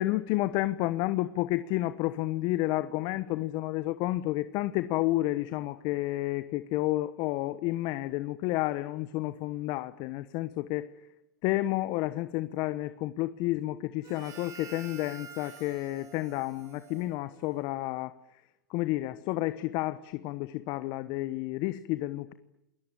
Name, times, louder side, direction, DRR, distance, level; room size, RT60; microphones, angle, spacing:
voice 1, 0.0-10.9 11.4-18.1 18.7-22.3, left 17 dB, 45° left, 13 dB, 1.1 m, -30 dB
Harmonica, 14.0-17.8, right 7 dB, 35° right, 3.3 m, -49 dB
28.0 x 21.0 x 8.9 m, 0.86 s
hypercardioid pair, 120°, 10 cm